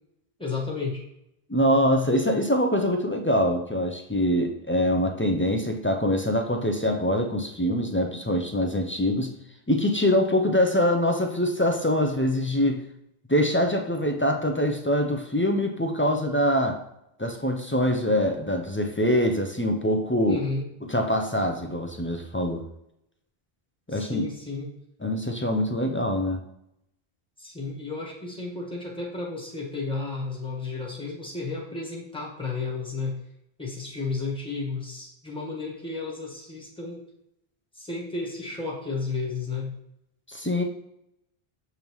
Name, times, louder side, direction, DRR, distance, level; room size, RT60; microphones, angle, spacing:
voice 1, 0.4-1.0 20.3-20.6 23.9-24.7 27.4-33.1 33.6-37.0 37.7-39.7, left 3 dB, 5° left, -3 dB, 1.3 m, -32 dB
voice 2, 1.5-9.3 9.7-12.8 13.3-16.8 17.2-20.4 20.9-22.6 23.9-24.2 25.0-26.4 40.3-40.6, left 1 dB, 20° left, 3 dB, 0.3 m, -24 dB
6.8 x 5.3 x 3.1 m, 0.80 s
omnidirectional pair, 1.0 m